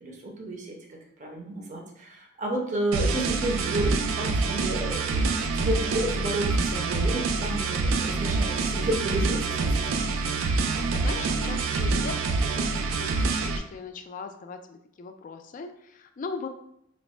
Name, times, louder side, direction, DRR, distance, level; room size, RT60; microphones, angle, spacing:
voice 1, 0.0-10.1, right 1 dB, 40° right, 0 dB, 0.7 m, -32 dB
sound 1, 2.9-13.6, right 3 dB, 85° right, 0.4 m, -26 dB
voice 2, 10.9-16.5, left 5 dB, 40° left, 6 dB, 0.3 m, -39 dB
3.1 x 2.1 x 4.1 m, 0.77 s
head